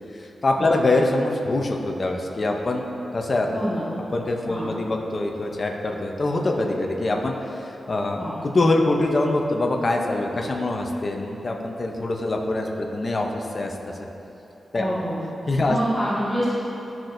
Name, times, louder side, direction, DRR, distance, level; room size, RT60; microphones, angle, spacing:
voice 1, 0.1-2.9 3.1-3.6 4.1-13.9 14.7-14.9 15.5-15.8, left 2 dB, 30° left, 1 dB, 0.6 m, -24 dB
voice 2, 3.5-3.8 4.5-4.7 8.2-8.3 14.8-15.2 15.6-16.4, equal, 10° right, -12 dB, 1.3 m, -26 dB
12.0 x 5.9 x 2.6 m, 3.0 s
wide cardioid pair, 175°, 0 cm